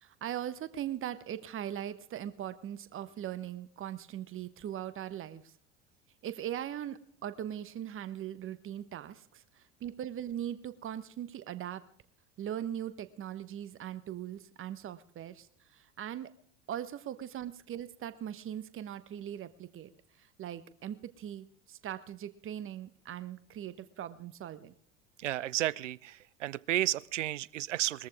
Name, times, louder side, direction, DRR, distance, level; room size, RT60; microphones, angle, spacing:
voice 1, 0.0-5.5 6.2-11.8 12.4-15.5 15.7-16.3 16.7-19.9 20.2-24.7, right 11 dB, 35° right, 1.1 m, -40 dB
voice 2, 25.2-28.1, right 14 dB, 80° right, 0.5 m, -32 dB
21.0 x 14.0 x 3.6 m
figure-of-eight pair, 70°, 36 cm